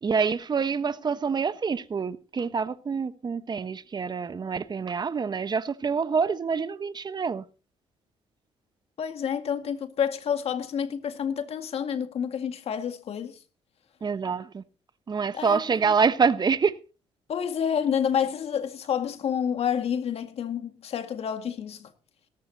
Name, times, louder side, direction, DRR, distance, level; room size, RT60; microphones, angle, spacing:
voice 1, 0.0-7.4 14.0-14.6 15.1-16.7, right 5 dB, 40° right, 1.2 m, -26 dB
voice 2, 9.0-13.4 15.3-15.6 17.3-21.9, left 8 dB, 60° left, 2.0 m, -29 dB
18.0 x 14.0 x 2.8 m
supercardioid pair, 65°, 12 cm